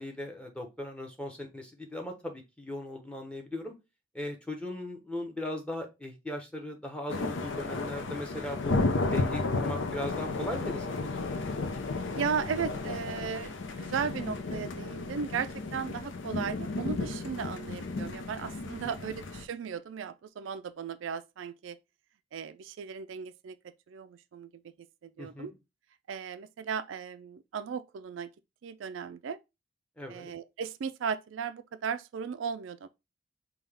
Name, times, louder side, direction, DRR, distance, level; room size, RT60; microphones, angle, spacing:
voice 1, 0.0-3.7 4.1-8.8 9.1-11.3 18.8-19.0 25.2-25.5 30.0-30.3, left 1 dB, 5° left, 0.9 m, -38 dB
Huge Thunderclap, 7.1-19.5, left 3 dB, 75° left, 0.6 m, -33 dB
voice 2, 12.1-21.8 22.3-23.6 23.9-24.6 25.0-25.5 26.1-28.3 28.6-29.4 30.1-32.9, right 6 dB, 80° right, 0.4 m, -36 dB
5.5 x 2.3 x 3.4 m
head